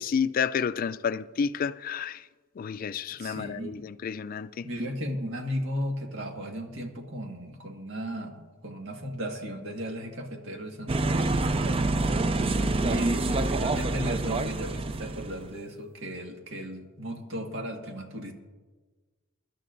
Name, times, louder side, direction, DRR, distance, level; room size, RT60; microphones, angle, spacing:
voice 1, 0.0-2.2 2.6-4.7 12.6-13.0, left 6 dB, 45° left, 0.3 m, -30 dB
voice 2, 3.1-3.8 4.6-12.2 12.8-18.3, equal, 75° right, 1.7 m, -35 dB
sound 1, 10.9-15.5, right 2 dB, 30° right, 0.4 m, -27 dB
23.5 x 12.0 x 2.6 m
head